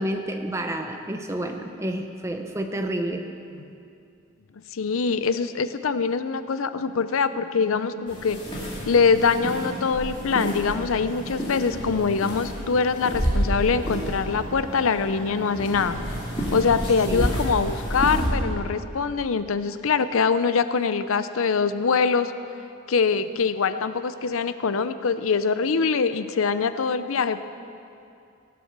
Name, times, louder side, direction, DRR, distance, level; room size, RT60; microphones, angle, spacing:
voice 1, 0.0-3.3 17.1-17.3, right 1 dB, 15° right, 5 dB, 0.7 m, -29 dB
voice 2, 4.7-8.4 8.9-16.0 16.5-22.3 22.9-27.4, left 5 dB, 80° left, 12 dB, 0.6 m, -23 dB
sound 1, 8.1-18.3, equal, 25° left, 2.3 m, -30 dB
17.5 x 7.6 x 6.6 m, 2.5 s
head